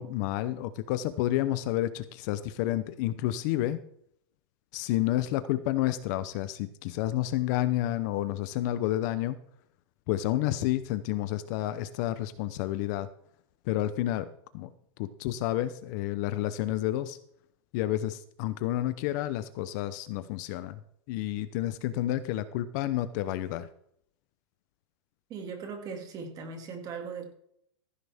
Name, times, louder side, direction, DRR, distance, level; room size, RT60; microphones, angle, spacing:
voice 1, 0.0-3.8 4.7-9.4 10.1-13.1 13.7-14.7 15.0-17.2 17.7-20.8 21.1-23.7, left 14 dB, 40° left, 13 dB, 0.6 m, -30 dB
voice 2, 25.3-27.3, right 5 dB, 25° right, 5 dB, 2.2 m, -39 dB
15.0 x 10.0 x 3.5 m, 0.69 s
supercardioid pair, 160°, 15 cm